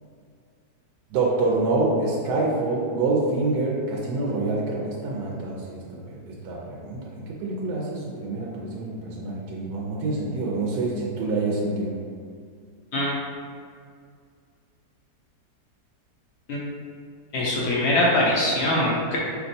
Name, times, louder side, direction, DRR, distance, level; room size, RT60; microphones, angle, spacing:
voice 1, 1.1-11.9, right 2 dB, 70° right, -3 dB, 1.1 m, -26 dB
voice 2, 17.3-19.2, left 1 dB, 85° left, -4 dB, 0.6 m, -22 dB
4.5 x 3.4 x 2.6 m, 2.2 s
omnidirectional pair, 1.9 m